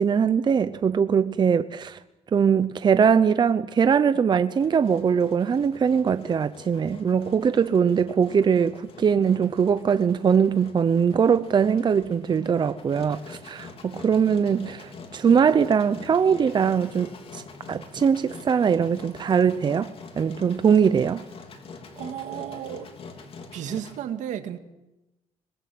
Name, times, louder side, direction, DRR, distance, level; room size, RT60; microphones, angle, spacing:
voice 1, 0.0-2.0 2.3-17.4 17.7-21.2, right 7 dB, 35° right, 0.8 m, -21 dB
Engine, 4.6-24.0, left 4 dB, 50° left, 3.4 m, -44 dB
voice 2, 22.0-22.9 23.5-24.6, right 10 dB, 80° right, 2.1 m, -33 dB
26.0 x 21.0 x 7.8 m
cardioid pair, 110°, 13 cm